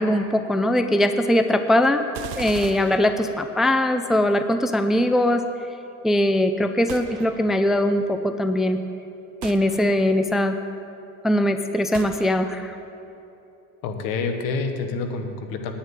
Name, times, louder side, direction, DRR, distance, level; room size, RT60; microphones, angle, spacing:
voice 1, 0.0-2.0 2.4-5.4 6.0-8.8 9.4-10.5 11.2-12.7, left 1 dB, ahead, 8 dB, 0.4 m, -21 dB
sound 1, 2.1-3.8 6.9-7.8 9.4-10.3 11.9-12.8, right 9 dB, 85° right, 0.7 m, -39 dB
voice 2, 13.8-15.7, left 4 dB, 80° left, 6 dB, 1.3 m, -27 dB
9.3 x 7.2 x 8.9 m, 2.9 s
cardioid pair, 120°, 34 cm